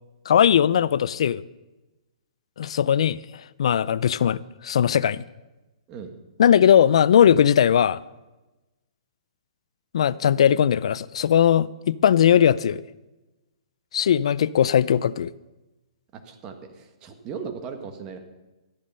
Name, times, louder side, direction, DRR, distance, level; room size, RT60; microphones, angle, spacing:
voice 1, 0.3-1.4 2.6-5.2 6.4-8.0 9.9-12.8 13.9-15.3, left 9 dB, 65° left, 0.5 m, -19 dB
voice 2, 16.1-18.2, right 6 dB, 25° right, 1.5 m, -37 dB
13.0 x 10.5 x 5.5 m
hypercardioid pair, 160°, 3 cm